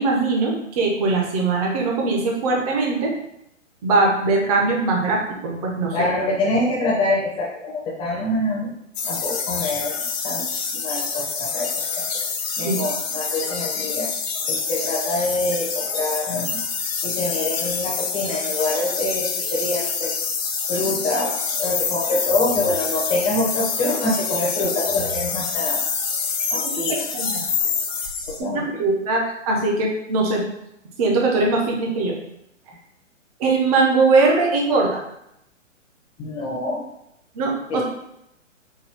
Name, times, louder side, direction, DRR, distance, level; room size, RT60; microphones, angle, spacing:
voice 1, 0.0-3.1 3.8-6.1 12.6-12.8 27.1-27.5 28.5-30.4 31.0-32.1 33.4-35.0 37.3-37.8, right 3 dB, 30° right, 0 dB, 0.8 m, -21 dB
voice 2, 5.9-8.7 9.0-10.4 10.7-12.0 12.6-14.1 14.5-16.6 17.0-20.1 20.7-25.8 26.5-27.0 28.3-28.6 36.2-36.8 37.7-37.8, left 2 dB, 15° left, -3 dB, 0.7 m, -25 dB
sound 1, 8.9-28.4, left 5 dB, 50° left, 0.8 m, -26 dB
4.4 x 2.2 x 3.4 m, 0.80 s
hypercardioid pair, 135°, 39 cm